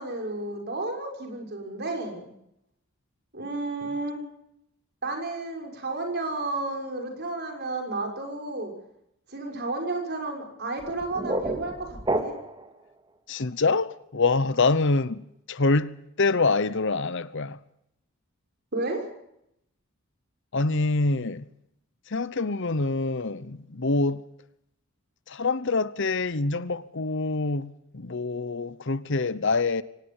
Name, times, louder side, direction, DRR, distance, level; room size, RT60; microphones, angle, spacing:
voice 1, 0.0-2.3 3.3-4.2 5.0-8.7 9.3-12.3 18.7-19.0, right 2 dB, 50° right, 6.1 m, -32 dB
sound 1, 10.8-12.7, right 1 dB, 20° right, 2.3 m, -30 dB
voice 2, 13.3-15.2 15.5-17.6 20.5-21.5 22.1-24.2 25.3-29.8, left 3 dB, 55° left, 0.9 m, -25 dB
24.5 x 18.5 x 7.2 m
head